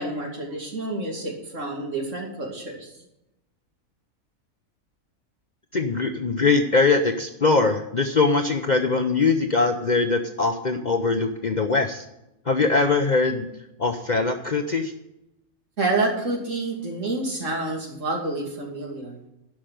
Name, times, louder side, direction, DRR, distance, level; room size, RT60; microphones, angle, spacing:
voice 1, 0.0-2.9 15.8-19.2, right 2 dB, 60° right, 0 dB, 3.0 m, -28 dB
voice 2, 5.7-12.0 12.5-13.5 13.8-14.9, left 3 dB, 40° left, 6 dB, 0.7 m, -22 dB
11.5 x 6.0 x 9.1 m, 0.89 s
omnidirectional pair, 1.4 m